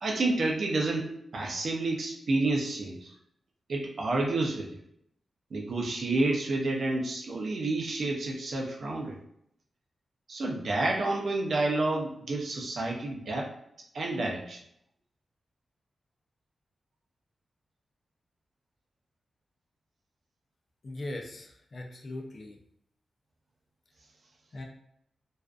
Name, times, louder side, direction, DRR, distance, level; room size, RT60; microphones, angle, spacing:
voice 1, 0.0-3.1 3.7-4.8 5.5-9.2 10.3-13.5 13.9-14.6, right 2 dB, 65° right, 0 dB, 0.5 m, -29 dB
voice 2, 20.8-22.6 24.5-24.6, left 1 dB, 40° left, 1 dB, 0.4 m, -39 dB
2.4 x 2.3 x 2.4 m, 0.74 s
wide cardioid pair, 120°, 0 cm